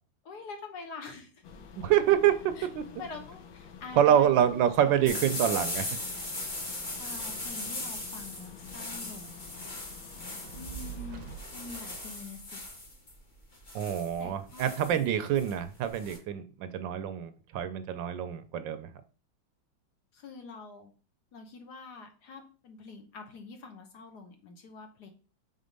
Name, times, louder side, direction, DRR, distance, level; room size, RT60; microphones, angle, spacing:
voice 1, 0.2-1.4 2.6-2.7 3.0-4.4 7.0-9.3 10.5-12.6 14.2-15.0 20.1-20.9 21.3-25.1, left 4 dB, 60° left, 5 dB, 1.4 m, -45 dB
sound 1, 1.4-11.4, left 7 dB, 85° left, 1.6 m, -49 dB
voice 2, 1.8-2.8 4.0-5.9 13.7-18.9, right 10 dB, 75° right, 10 dB, 1.2 m, -26 dB
sound 2, 5.0-16.2, left 2 dB, 30° left, 1.0 m, -38 dB
Fire, 10.4-12.9, right 9 dB, 60° right, 0.9 m, -44 dB
5.1 x 4.1 x 5.2 m, 0.38 s
omnidirectional pair, 2.2 m